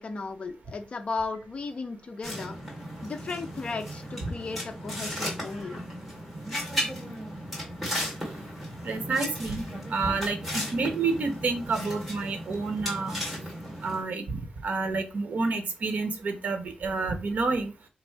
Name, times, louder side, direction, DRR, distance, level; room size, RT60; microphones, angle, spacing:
voice 1, 0.0-2.6 3.0-5.8, left 4 dB, 40° left, 4 dB, 0.4 m, -35 dB
sound 1, 2.2-14.0, equal, ahead, 2.0 m, -35 dB
voice 2, 8.8-9.6 9.9-13.2 13.8-17.7, right 3 dB, 65° right, 6 dB, 0.8 m, -29 dB
3.2 x 2.5 x 4.4 m, 0.31 s
wide cardioid pair, 150°, 3 cm